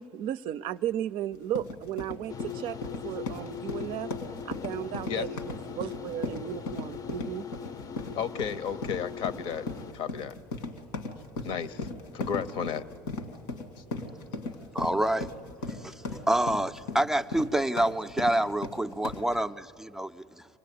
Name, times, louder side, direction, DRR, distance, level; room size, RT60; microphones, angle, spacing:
voice 1, 0.0-2.8 3.0-4.1 4.4-7.5, right 11 dB, 55° right, 0.5 m, -35 dB
sound 1, 1.3-19.4, left 3 dB, 85° left, 2.3 m, -38 dB
sound 2, 2.3-9.9, left 7 dB, 35° left, 0.7 m, -41 dB
voice 2, 8.2-9.6 9.9-10.4 11.4-12.9 13.8-13.9, left 7 dB, 60° left, 1.0 m, -33 dB
voice 3, 14.7-15.3 15.7-20.5, right 1 dB, 5° right, 0.5 m, -28 dB
26.0 x 19.0 x 9.3 m
supercardioid pair, 90°, 10 cm